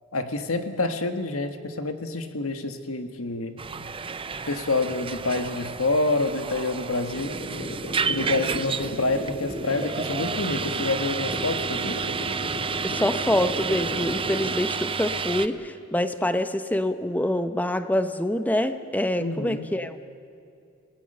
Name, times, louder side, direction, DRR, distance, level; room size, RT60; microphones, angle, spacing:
voice 1, 0.1-3.6 4.5-7.3 8.1-12.0 19.2-19.7, left 2 dB, 90° left, 8 dB, 1.5 m, -27 dB
sound 1, 3.6-15.5, right 5 dB, 25° right, 0.6 m, -31 dB
sound 2, 7.1-14.5, equal, 50° left, 2.8 m, -35 dB
voice 2, 12.8-20.0, left 1 dB, 10° left, 10 dB, 0.8 m, -26 dB
28.0 x 18.0 x 6.7 m, 2.6 s
head